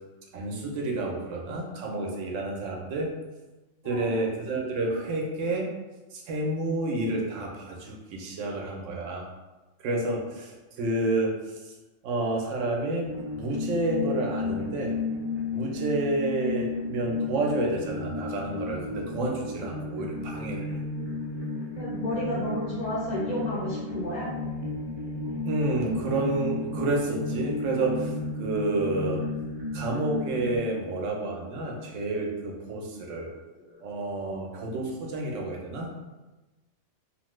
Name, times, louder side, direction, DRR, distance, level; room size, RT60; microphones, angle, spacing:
voice 1, 0.3-3.1 3.8-5.7 6.1-9.3 9.8-11.7 12.0-13.1 13.4-15.0 15.5-20.8 25.4-29.2 29.7-33.3 33.8-36.0, right 2 dB, 90° right, -1 dB, 1.0 m, -29 dB
sound 1, 13.0-30.6, left 3 dB, 35° right, 0.4 m, -33 dB
voice 2, 21.7-24.3 33.7-33.8, left 1 dB, 40° left, -7 dB, 0.9 m, -31 dB
2.9 x 2.1 x 3.0 m, 1.1 s
omnidirectional pair, 1.2 m